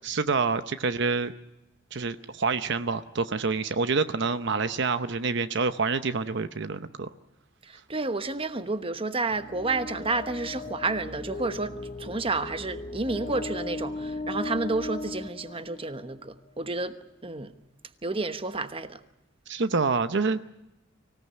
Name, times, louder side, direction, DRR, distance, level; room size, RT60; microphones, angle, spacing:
voice 1, 0.0-1.3 1.9-7.1 19.5-20.4, right 4 dB, 60° right, 0.8 m, -27 dB
voice 2, 7.6-11.7 12.0-16.9 17.2-17.5 18.0-19.0, right 3 dB, 30° right, 1.1 m, -30 dB
sound 1, 9.3-16.2, left 2 dB, 35° left, 0.7 m, -37 dB
25.0 x 17.5 x 9.6 m
head